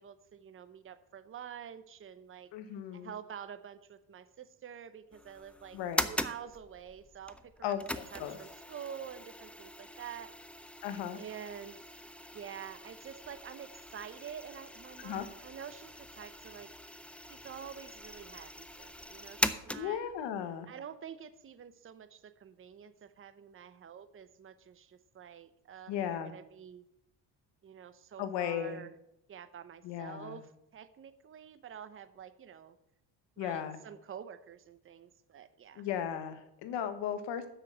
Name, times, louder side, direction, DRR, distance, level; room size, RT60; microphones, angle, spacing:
voice 1, 0.0-2.5 2.9-7.8 8.1-10.3 11.2-11.8 12.3-16.7 17.2-20.0 20.7-26.8 27.6-28.9 29.3-32.8 33.4-35.9, right 8 dB, 30° right, 12 dB, 0.8 m, -48 dB
voice 2, 2.5-3.1 5.7-6.0 7.6-8.4 10.8-11.2 15.0-15.3 19.7-20.7 25.9-26.3 28.2-28.9 29.8-30.4 33.4-33.8 35.7-37.5, left 9 dB, 80° left, 9 dB, 1.3 m, -36 dB
sound 1, 5.1-20.2, left 1 dB, 5° left, 0.5 m, -41 dB
7.0 x 6.5 x 7.9 m, 0.81 s
cardioid pair, 100°, 42 cm